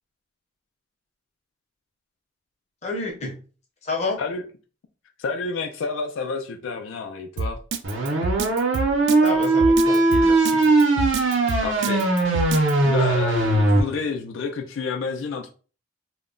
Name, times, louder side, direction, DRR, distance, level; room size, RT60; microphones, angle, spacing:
voice 1, 2.8-3.4 3.8-4.2 9.2-10.7, left 3 dB, 35° left, 0.6 m, -30 dB
voice 2, 5.2-7.6 11.6-12.1 12.8-15.5, left 4 dB, 80° left, 0.3 m, -29 dB
Drum kit, 7.4-12.7, right 3 dB, 60° right, 0.3 m, -27 dB
sound 1, 7.8-13.8, right 2 dB, 80° right, 0.7 m, -19 dB
2.1 x 2.0 x 3.6 m
head